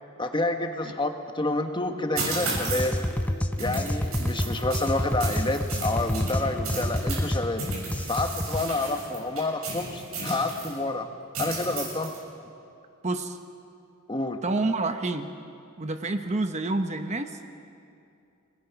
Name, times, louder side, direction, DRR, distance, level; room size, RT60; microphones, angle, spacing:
voice 1, 0.2-1.1 1.3-3.0 3.6-7.6 8.1-11.1 11.4-12.1 14.1-14.4, left 2 dB, 20° left, 5 dB, 1.2 m, -28 dB
sound 1, 2.2-3.0 3.6-7.3 7.6-10.7 11.3-12.2, right 3 dB, 80° right, 7.4 m, -34 dB
sound 2, 2.5-8.6, left 1 dB, 5° left, 0.6 m, -29 dB
voice 2, 13.0-13.4 14.4-15.3 15.8-17.5, right 2 dB, 30° right, 7 dB, 0.9 m, -28 dB
29.0 x 20.0 x 5.9 m, 2.5 s
head